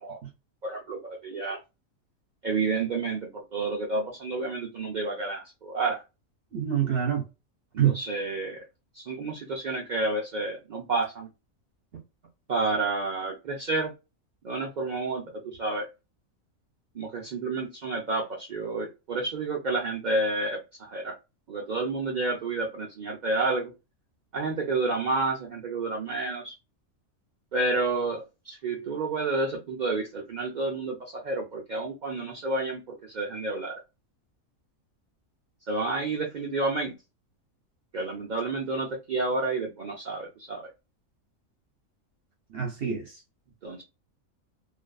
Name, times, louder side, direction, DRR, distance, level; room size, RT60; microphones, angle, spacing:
voice 1, 0.6-1.6 2.4-6.0 7.8-8.6 8.9-11.3 12.5-13.9 14.4-15.9 16.9-21.2 21.5-23.7 24.3-26.6 27.5-33.8 35.7-36.9 37.9-40.6 43.6-43.8, right 3 dB, 75° right, 0.4 m, -30 dB
voice 2, 6.5-7.3 7.8-8.0 42.5-43.1, right 9 dB, 55° right, 0.8 m, -26 dB
2.5 x 2.4 x 2.3 m
omnidirectional pair, 1.4 m